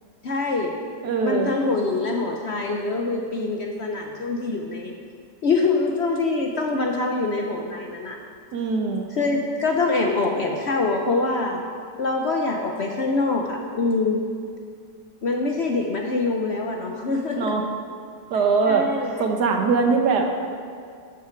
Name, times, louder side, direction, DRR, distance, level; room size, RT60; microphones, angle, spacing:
voice 1, 0.2-0.8 1.2-5.0 5.4-8.2 9.1-11.6 12.0-14.2 15.2-17.6 18.7-19.2, left 3 dB, 55° left, 1 dB, 0.8 m, -24 dB
voice 2, 1.0-1.5 8.5-9.1 17.4-17.6 18.3-20.5, right 4 dB, 75° right, 3 dB, 1.6 m, -22 dB
12.0 x 8.9 x 4.5 m, 2.2 s
omnidirectional pair, 1.8 m